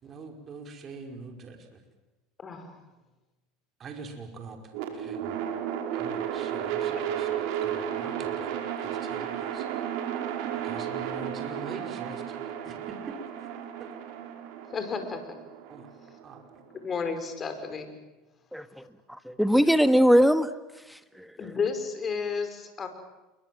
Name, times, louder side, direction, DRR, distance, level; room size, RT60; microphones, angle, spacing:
voice 1, 0.0-1.8 3.8-5.4 5.9-8.6 8.8-9.7 10.5-12.3 12.6-13.2 13.4-13.5 13.8-13.9 15.7-15.9 16.2-16.6, right 4 dB, 35° right, 4 dB, 5.2 m, -44 dB
voice 2, 2.4-2.8 14.7-15.4 16.8-17.9 21.4-22.9, left 5 dB, 30° left, 8 dB, 5.5 m, -32 dB
sound 1, 4.7-16.8, right 9 dB, 70° right, 5.2 m, -33 dB
voice 3, 18.5-18.8 19.1-20.5 20.9-21.3, equal, ahead, 11 dB, 1.6 m, -21 dB
28.0 x 24.0 x 7.9 m, 1.0 s
supercardioid pair, 105°, 0 cm